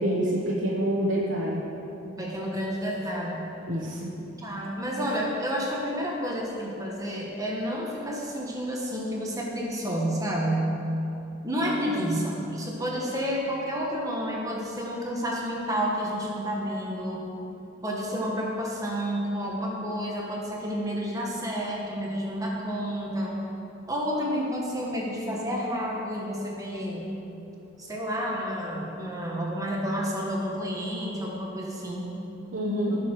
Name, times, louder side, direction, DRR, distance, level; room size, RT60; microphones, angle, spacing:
voice 1, 0.0-1.6 3.7-4.1 32.5-33.0, equal, 70° right, -5 dB, 1.3 m, -27 dB
voice 2, 2.0-3.5 4.4-10.8 11.4-17.3 17.8-23.4 23.9-27.2 27.8-32.1 32.9-33.0, equal, 15° right, -3 dB, 1.6 m, -30 dB
18.0 x 6.7 x 4.8 m, 3.0 s
head